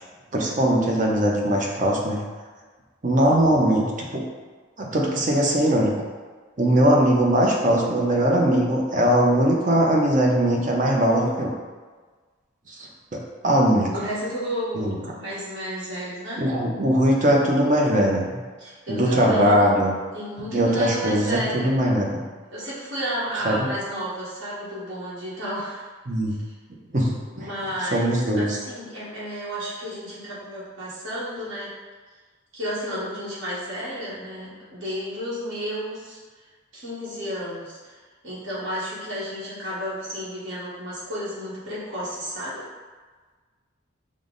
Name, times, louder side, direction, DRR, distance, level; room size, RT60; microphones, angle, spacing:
voice 1, 0.3-2.2 3.0-4.2 4.8-5.9 6.6-11.5 13.1-13.9 14.7-15.0 16.4-18.4 18.9-19.9 20.5-22.2 23.4-23.7 26.1-26.3 26.9-27.5 27.9-28.6, right 1 dB, 40° right, -2 dB, 0.6 m, -20 dB
voice 2, 13.9-16.4 18.6-19.7 20.1-21.8 22.5-25.9 26.3-26.5 27.3-31.7 32.5-36.2 36.7-38.0 38.2-42.6, equal, 65° right, -9 dB, 1.2 m, -32 dB
5.4 x 2.1 x 3.8 m, 1.4 s
head